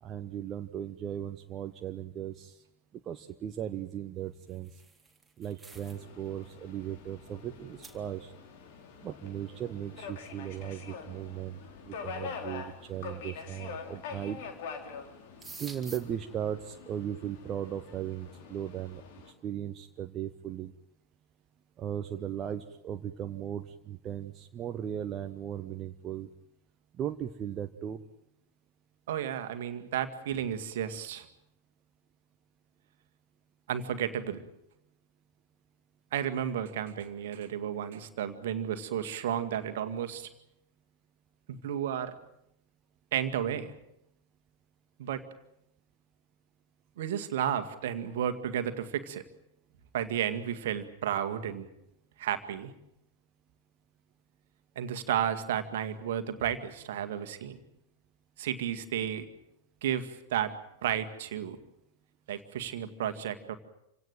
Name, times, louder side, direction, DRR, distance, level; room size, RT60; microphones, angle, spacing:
voice 1, 0.0-2.6 3.0-4.8 5.4-8.3 9.0-11.6 11.8-14.4 15.4-19.0 19.4-20.7 21.8-26.3 26.9-28.0, right 10 dB, 30° right, 7 dB, 1.0 m, -37 dB
sound 1, 4.3-6.1 6.4-6.7 7.3-7.4 7.8-8.0 10.3-10.4 11.3-11.4 12.2-12.6 13.8-14.3 14.6-14.8 15.0-16.0, right 3 dB, 5° right, 3.7 m, -49 dB
Subway metro underground, 5.7-19.3, left 6 dB, 50° left, 3.5 m, -45 dB
voice 2, 29.1-31.3 33.7-34.4 36.1-40.3 41.5-42.2 43.1-43.7 45.0-45.2 47.0-49.2 49.9-51.7 52.2-52.7 54.8-57.6 58.4-59.3 59.8-60.5 60.8-61.6 62.3-63.5, right 9 dB, 55° right, 8 dB, 2.0 m, -32 dB
28.0 x 17.5 x 9.1 m, 0.80 s
figure-of-eight pair, 90°, 0 cm